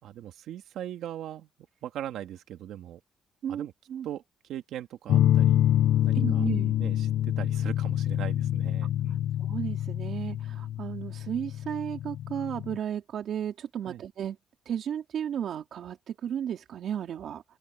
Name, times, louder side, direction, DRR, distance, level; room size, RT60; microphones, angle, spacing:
voice 1, 0.0-1.5 1.8-3.0 3.5-3.7 4.0-4.2 4.5-5.6 6.0-6.4 6.8-9.3 13.9-14.0, right 11 dB, 80° right, 2.2 m, -40 dB
voice 2, 3.4-4.1 6.1-6.8 9.4-14.4 14.7-17.4, right 9 dB, 60° right, 3.5 m, -34 dB
sound 1, 5.1-12.8, left 12 dB, 80° left, 0.4 m, -26 dB
open air
cardioid pair, 120°, 0 cm